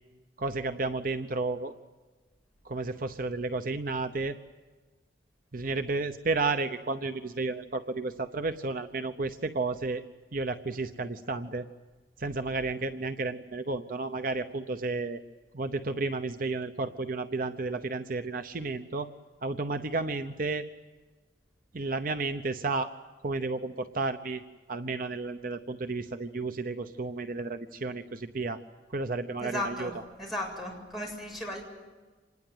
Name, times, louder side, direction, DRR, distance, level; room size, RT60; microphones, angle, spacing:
voice 1, 0.4-1.7 2.6-4.4 5.5-10.0 10.3-11.7 12.2-15.2 15.5-19.1 19.4-20.7 21.7-22.9 23.2-24.4 24.7-28.6 28.9-29.9, right 3 dB, 50° right, 9 dB, 0.9 m, -32 dB
voice 2, 29.4-29.9 30.2-31.6, left 1 dB, ahead, 0 dB, 7.4 m, -35 dB
26.5 x 20.5 x 9.3 m, 1.3 s
head